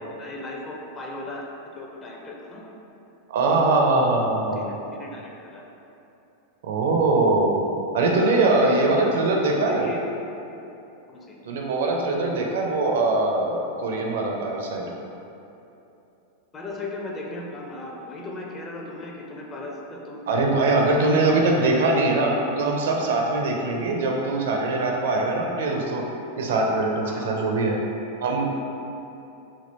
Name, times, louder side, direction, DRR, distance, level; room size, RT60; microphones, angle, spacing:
voice 1, 0.2-1.5 1.8-2.7 3.4-3.8 4.9-5.6 8.2-10.0 11.1-11.4 16.5-20.3 20.7-21.6 27.0-27.4, left 2 dB, 20° left, -1 dB, 0.5 m, -36 dB
voice 2, 3.3-4.6 6.6-7.6 7.9-9.9 11.5-14.8 20.3-26.0 26.4-27.8 28.2-28.5, right 2 dB, 60° right, 0 dB, 0.4 m, -22 dB
3.5 x 2.4 x 3.9 m, 2.9 s
figure-of-eight pair, 90°, 0 cm